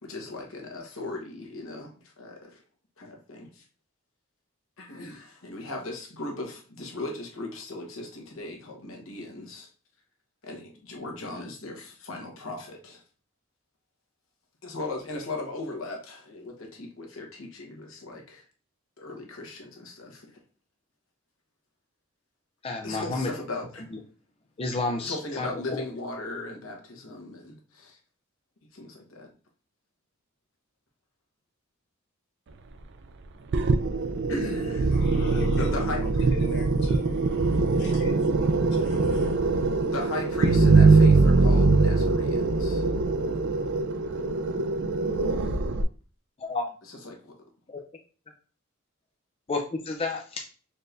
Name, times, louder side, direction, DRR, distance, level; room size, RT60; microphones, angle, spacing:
voice 1, 0.0-2.6 3.0-3.6 4.8-9.7 10.4-13.0 14.6-18.4 19.0-20.4 22.8-23.9 25.0-28.0 28.7-29.3 34.3-35.0 35.6-36.3 39.9-42.8 44.1-44.3 46.8-47.3, left 2 dB, 75° left, 1.2 m, -38 dB
voice 2, 22.6-23.3 24.6-25.8 46.4-46.6 47.7-47.8 49.5-50.4, left 3 dB, 30° left, 0.4 m, -30 dB
sound 1, 33.5-45.8, right 3 dB, 55° right, 0.4 m, -22 dB
voice 3, 34.9-39.4, left 2 dB, 55° left, 0.7 m, -41 dB
4.2 x 2.5 x 3.3 m
head